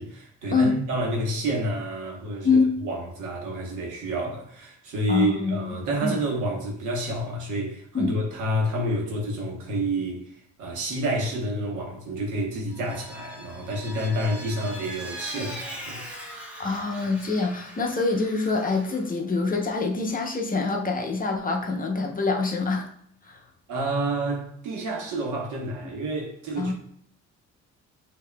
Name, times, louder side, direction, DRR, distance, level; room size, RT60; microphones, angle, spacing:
voice 1, 0.0-10.3 10.6-16.0 23.7-26.7, right 1 dB, 85° right, 1.2 m, -29 dB
voice 2, 2.4-2.8 5.1-6.2 7.9-8.1 16.6-22.9 23.2-23.4 26.6-26.7, left 4 dB, 30° left, 0.7 m, -25 dB
Vehicle, 12.7-19.1, equal, 5° right, 1.1 m, -41 dB
5.7 x 2.8 x 2.2 m
cardioid pair, 90°, 30 cm